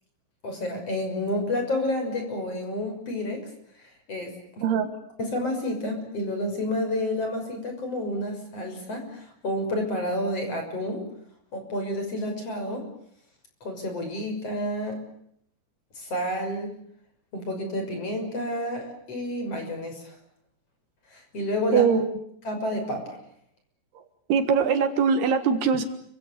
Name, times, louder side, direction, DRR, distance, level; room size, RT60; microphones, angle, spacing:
voice 1, 0.4-3.5 3.8-4.7 5.2-11.1 11.5-12.9 13.6-15.0 16.0-16.8 17.3-20.2 21.1-21.9 22.4-23.2, left 1 dB, 35° left, 5 dB, 7.0 m, -30 dB
voice 2, 21.7-22.1 24.3-25.8, right 6 dB, 70° right, 9 dB, 3.4 m, -22 dB
30.0 x 25.5 x 6.8 m, 0.70 s
omnidirectional pair, 5.0 m